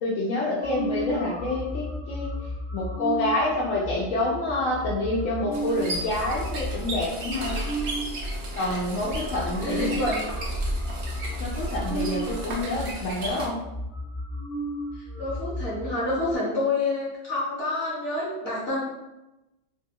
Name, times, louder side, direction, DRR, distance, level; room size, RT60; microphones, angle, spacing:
voice 1, 0.0-2.3 2.7-7.6 8.5-10.1 11.4-13.6, left 2 dB, 85° left, -5 dB, 1.0 m, -27 dB
sound 1, 0.6-8.0 8.7-8.8 9.0-16.3, right 1 dB, 35° right, 0.6 m, -34 dB
sound 2, 5.5-13.5, right 1 dB, 65° right, 0.9 m, -33 dB
voice 2, 9.6-10.2 15.0-18.8, left 2 dB, 55° left, -6 dB, 1.0 m, -28 dB
3.1 x 2.2 x 2.8 m, 0.96 s
omnidirectional pair, 1.3 m